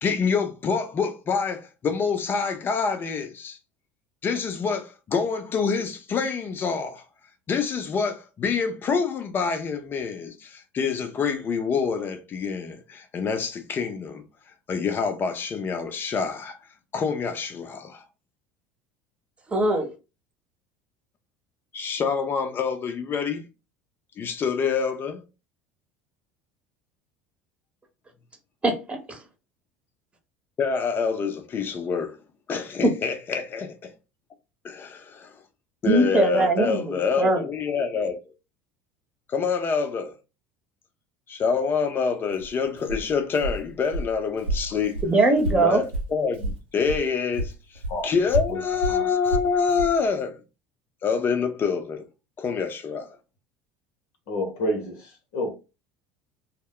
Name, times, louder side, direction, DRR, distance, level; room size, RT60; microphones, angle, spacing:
voice 1, 0.0-3.6 4.2-7.0 7.5-14.2 14.7-16.6 16.9-18.0 21.7-23.4 24.2-25.2 30.6-32.1 32.5-33.9 34.6-35.3 35.8-38.2 39.3-40.1 41.3-45.0 45.5-47.5 48.0-50.3 51.0-52.0 52.4-53.1, left 5 dB, 35° left, 0.7 m, -26 dB
voice 2, 19.5-19.9 28.6-29.2 32.8-32.9 35.9-37.4 45.0-45.8, right 2 dB, 20° right, 0.9 m, -21 dB
Walk footsteps, 42.3-47.1 47.3-50.0, right 1 dB, 80° right, 0.8 m, -31 dB
voice 3, 54.3-55.5, left 1 dB, 65° left, 0.9 m, -29 dB
2.2 x 2.1 x 3.6 m
hypercardioid pair, 70°, 6 cm